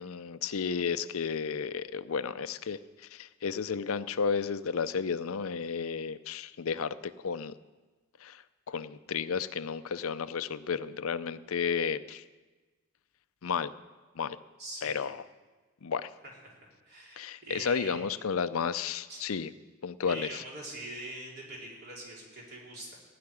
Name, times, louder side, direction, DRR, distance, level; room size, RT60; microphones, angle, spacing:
voice 1, 0.0-7.6 8.2-12.2 13.4-13.7 14.2-14.4 14.8-15.2 15.8-16.1 17.2-19.5 19.8-20.4, left 6 dB, 70° left, 14 dB, 0.5 m, -32 dB
voice 2, 14.6-15.0 16.4-16.6 16.9-18.1 19.1-19.2 20.0-23.0, right 1 dB, 50° right, -3 dB, 3.9 m, -43 dB
15.5 x 5.9 x 9.8 m, 1.3 s
head